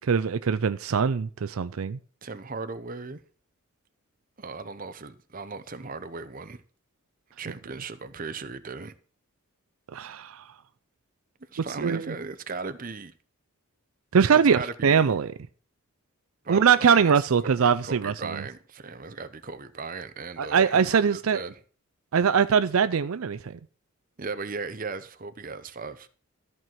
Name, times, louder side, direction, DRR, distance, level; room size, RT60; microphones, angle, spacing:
voice 1, 0.1-2.0 9.9-10.4 11.8-12.1 14.1-15.3 16.5-18.4 20.4-21.4 22.1-23.4, right 6 dB, 75° right, 0.5 m, -22 dB
voice 2, 2.2-3.2 4.4-6.6 7.4-8.9 11.5-13.1 14.3-15.1 16.4-20.8 21.1-21.6 24.2-26.1, right 4 dB, 40° right, 0.8 m, -37 dB
13.5 x 4.7 x 7.5 m
head